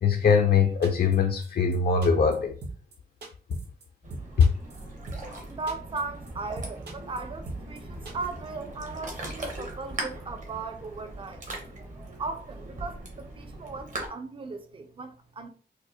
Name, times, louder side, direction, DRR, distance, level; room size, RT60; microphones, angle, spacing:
voice 1, 0.0-2.5 4.4-4.5, left 6 dB, 65° left, 0.4 m, -21 dB
sound 1, 0.8-1.2 1.4-1.5 1.7-1.8 2.0-2.4 2.6-2.9 3.2-3.8 4.1-5.4 5.7-6.0 6.3-6.4 6.6-7.2 7.5-7.8 8.1-8.2, right 2 dB, 70° right, 0.9 m, -38 dB
Ocean, 4.0-14.1, right 2 dB, 45° right, 0.9 m, -40 dB
voice 2, 5.5-11.4 12.2-15.5, right 3 dB, 30° right, 0.4 m, -37 dB
4.6 x 2.0 x 2.8 m
wide cardioid pair, 170°, 18 cm